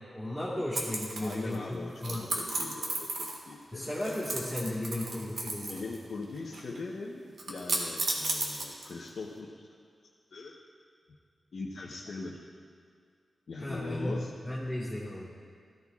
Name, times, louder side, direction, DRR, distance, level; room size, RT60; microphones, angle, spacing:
voice 1, 0.1-2.3 3.7-5.8 13.6-14.2 14.4-15.3, left 1 dB, 5° right, -7 dB, 1.7 m, -35 dB
sound 1, 0.7-1.5 2.0-3.5 3.8-6.0 6.2-6.8 7.4-9.1, right 2 dB, 65° right, 1.8 m, -34 dB
voice 2, 1.2-3.9 4.2-4.3 5.7-9.7 10.3-10.6 11.5-12.4 13.5-14.3, left 3 dB, 60° left, -4 dB, 1.0 m, -41 dB
18.0 x 14.0 x 2.5 m, 2.2 s
wide cardioid pair, 160°, 0 cm